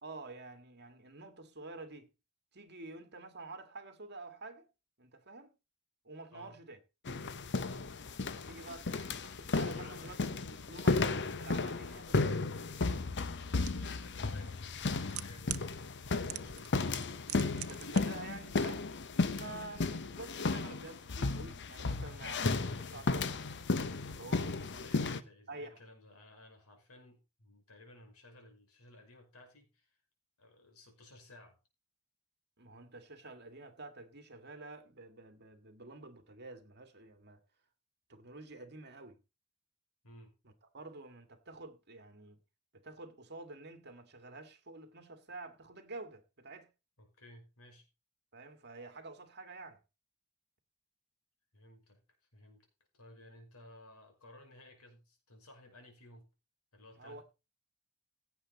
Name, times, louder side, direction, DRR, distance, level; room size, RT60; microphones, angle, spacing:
voice 1, 0.0-2.1 2.5-4.7 5.0-5.5 6.0-6.8 8.5-10.2 10.7-11.1 11.4-12.5 17.7-18.9 19.3-23.3 24.1-25.2 25.5-25.8 32.6-37.4 38.1-39.2 40.4-42.4 42.7-46.7 48.3-49.8 57.0-57.2, right 3 dB, 50° right, 2.1 m, -49 dB
sound 1, 7.1-25.2, left 3 dB, 55° left, 1.0 m, -34 dB
voice 2, 9.6-10.2 13.6-17.1 19.4-19.7 24.7-30.0 30.4-31.6 40.0-40.3 47.0-47.9 51.5-52.0 52.3-52.7 52.9-56.3 56.7-57.2, left 1 dB, 75° left, 5.5 m, -57 dB
sound 2, 13.7-13.8 14.7-15.7 16.3-16.7 16.9-18.0 18.3-18.4, right 15 dB, 70° right, 0.8 m, -40 dB
16.5 x 8.5 x 4.1 m
head